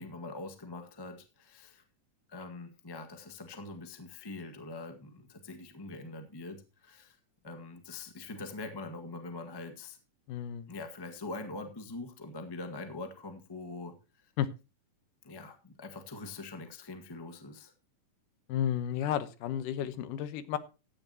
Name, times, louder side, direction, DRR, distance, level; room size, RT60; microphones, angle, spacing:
voice 1, 0.0-1.8 2.3-7.2 7.4-10.0 10.7-13.9 15.2-17.7, left 3 dB, 25° left, 6 dB, 0.5 m, -43 dB
voice 2, 10.3-10.7 14.4-14.5 18.5-20.6, left 10 dB, 80° left, 13 dB, 2.5 m, -32 dB
15.5 x 10.0 x 2.9 m, 0.29 s
omnidirectional pair, 3.8 m